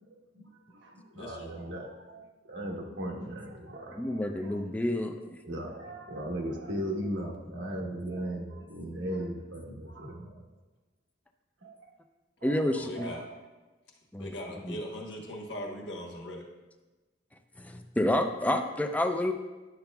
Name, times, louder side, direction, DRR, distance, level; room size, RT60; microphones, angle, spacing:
voice 1, 0.0-4.6 5.4-10.4 11.6-11.9 12.4-12.6 12.9-13.3, right 1 dB, 85° right, 1 dB, 1.1 m, -38 dB
voice 2, 1.1-1.5 12.7-13.2 14.2-16.5, left 1 dB, 80° left, -1 dB, 1.4 m, -40 dB
voice 3, 3.9-5.4 12.4-13.1 14.1-14.3 14.6-14.8 17.6-19.3, left 1 dB, 10° left, 6 dB, 0.4 m, -29 dB
10.5 x 6.8 x 2.3 m, 1.2 s
head